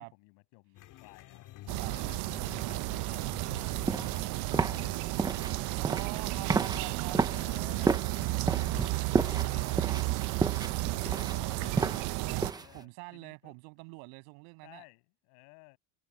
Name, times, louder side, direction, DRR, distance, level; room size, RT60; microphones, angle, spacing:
voice 1, 0.0-4.2 4.6-5.6 7.2-8.1 8.5-12.0 12.5-13.6 14.6-15.8, left 29 dB, 60° left, 7.2 m, -56 dB
sound 1, 0.7-12.0, left 14 dB, 45° left, 3.8 m, -52 dB
sound 2, 1.7-12.5, right 20 dB, 45° right, 0.7 m, -33 dB
sound 3, 3.6-12.8, right 4 dB, 10° right, 0.7 m, -33 dB
voice 2, 5.8-7.2 12.2-14.8, right 38 dB, 65° right, 7.1 m, -45 dB
supercardioid pair, 145°, 45 cm